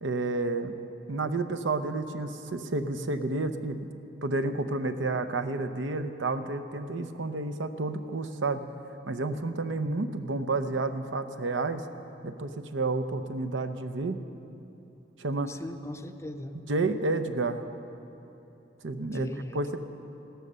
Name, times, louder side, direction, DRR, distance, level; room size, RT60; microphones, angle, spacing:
voice 1, 0.0-0.7 1.1-3.9 4.2-8.6 9.1-11.9 12.2-14.2 15.2-15.6 16.7-17.6 18.8-19.8, right 3 dB, 85° right, 9 dB, 0.8 m, -30 dB
voice 2, 15.5-16.6 19.0-19.8, left 1 dB, 15° left, 7 dB, 0.5 m, -40 dB
16.0 x 12.5 x 6.8 m, 2.9 s
head